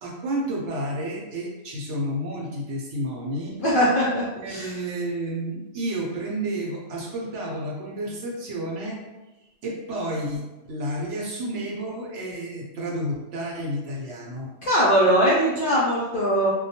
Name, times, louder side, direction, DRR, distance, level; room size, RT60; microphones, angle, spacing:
voice 1, 0.0-3.6 4.4-9.0 9.6-14.5, right 1 dB, 70° right, -2 dB, 0.8 m, -31 dB
voice 2, 3.6-4.7 14.6-16.5, equal, 65° left, -8 dB, 0.5 m, -21 dB
2.2 x 2.2 x 2.7 m, 1.0 s
omnidirectional pair, 1.4 m